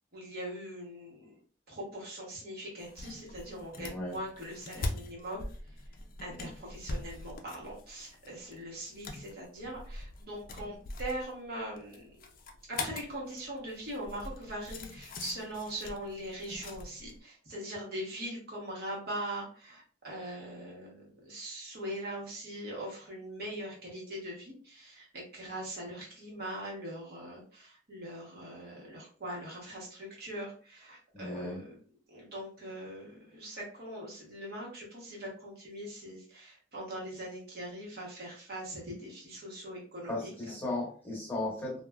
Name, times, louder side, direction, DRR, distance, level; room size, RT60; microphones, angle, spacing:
voice 1, 0.1-1.4 1.7-12.1 12.7-31.7 32.1-40.5, right 1 dB, 55° right, -3 dB, 1.0 m, -41 dB
sound 1, 2.8-17.2, left 2 dB, 50° left, 0.4 m, -43 dB
voice 2, 3.8-4.1 6.3-6.5 31.1-31.6 40.1-41.8, left 2 dB, 10° left, -4 dB, 1.1 m, -36 dB
3.2 x 2.2 x 2.3 m, 0.42 s
head